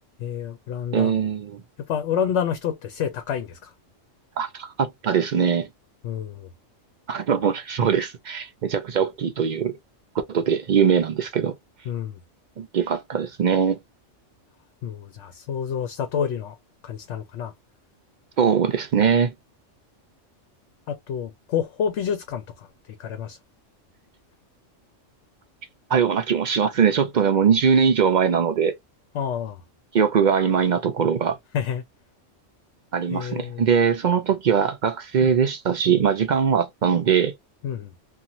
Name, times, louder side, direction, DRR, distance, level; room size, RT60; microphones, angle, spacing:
voice 1, 0.2-1.1 1.9-3.7 6.0-6.5 11.9-12.2 14.8-16.6 16.8-17.5 20.9-23.4 29.1-29.6 31.5-31.8 33.1-33.7 35.2-35.3 37.6-37.9, left 8 dB, 70° left, 0.8 m, -28 dB
voice 2, 0.9-1.6 4.4-5.7 7.1-9.8 10.3-11.5 12.6-13.8 18.4-19.3 25.9-28.8 29.9-31.4 32.9-37.3, right 7 dB, 60° right, 0.5 m, -21 dB
2.9 x 2.4 x 2.5 m
omnidirectional pair, 1.3 m